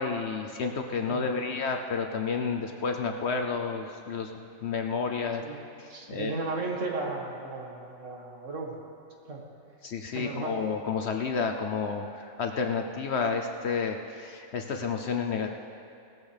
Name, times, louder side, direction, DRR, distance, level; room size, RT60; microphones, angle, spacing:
voice 1, 0.0-5.4 5.8-6.4 7.0-7.1 9.8-15.6, left 5 dB, 60° left, 4 dB, 0.9 m, -31 dB
voice 2, 1.1-1.4 5.4-5.6 5.9-8.8 9.3-9.4 10.1-10.6, right 3 dB, 60° right, 0 dB, 1.9 m, -35 dB
18.0 x 13.5 x 3.4 m, 2.6 s
omnidirectional pair, 1.5 m